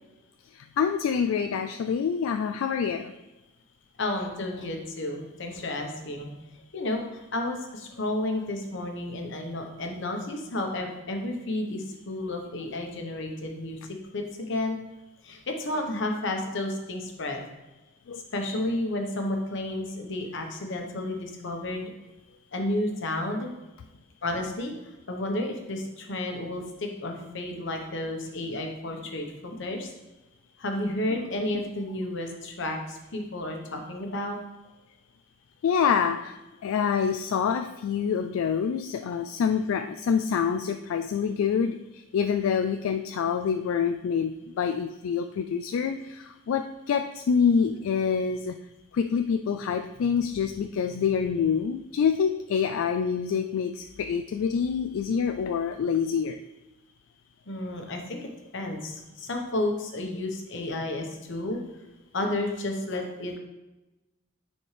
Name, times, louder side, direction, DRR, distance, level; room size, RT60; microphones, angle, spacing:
voice 1, 0.5-3.2 18.1-18.2 35.6-48.6 48.9-56.4, left 6 dB, 85° left, 8 dB, 0.3 m, -26 dB
voice 2, 4.0-6.3 6.7-13.8 14.1-14.8 15.2-17.4 18.3-21.9 22.5-23.5 24.2-24.7 25.1-29.9 30.6-34.4 57.5-61.6 62.1-63.4, left 1 dB, 65° left, 3 dB, 1.1 m, -31 dB
9.5 x 4.3 x 3.3 m, 1.0 s
head